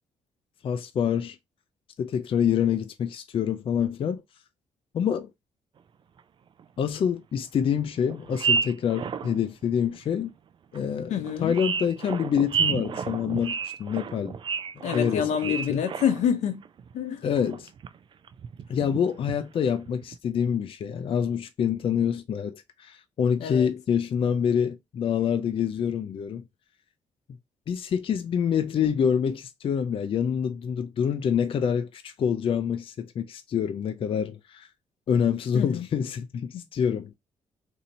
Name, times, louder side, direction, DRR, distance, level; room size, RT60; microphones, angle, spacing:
voice 1, 0.6-1.4 2.0-4.2 4.9-5.3 6.8-10.3 10.7-11.1 11.4-14.4 14.8-15.8 17.2-17.7 18.7-26.4 27.7-34.7 35.1-37.1, left 8 dB, 50° left, 0.4 m, -26 dB
sound 1, 6.2-6.3 6.6-6.7 7.6-7.7 8.1-9.4 9.9-10.0 10.7-10.8 11.2-16.4 16.6-16.9 17.4-18.0 18.3-19.4 19.8-20.1, right 6 dB, 45° right, 0.4 m, -31 dB
voice 2, 11.1-11.5 14.8-16.6 16.9-17.2 23.4-23.7 35.5-35.9 36.5-36.6, left 8 dB, 85° left, 0.7 m, -27 dB
2.7 x 2.7 x 4.0 m
cardioid pair, 100°, 12 cm